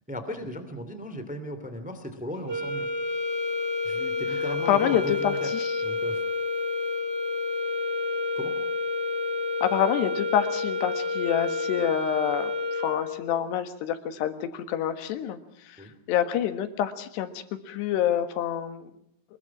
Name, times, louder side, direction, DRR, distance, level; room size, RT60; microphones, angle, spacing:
voice 1, 0.1-2.9 3.8-5.5 5.8-6.2 8.3-8.5 15.8-15.9, equal, 10° right, 8 dB, 0.4 m, -36 dB
sound 1, 2.4-13.3, left 3 dB, 30° right, 1.3 m, -29 dB
voice 2, 4.7-5.7 9.6-15.4 15.7-15.8 16.1-18.9, left 10 dB, 65° left, 10 dB, 3.3 m, -27 dB
25.0 x 22.0 x 6.0 m, 0.69 s
omnidirectional pair, 5.6 m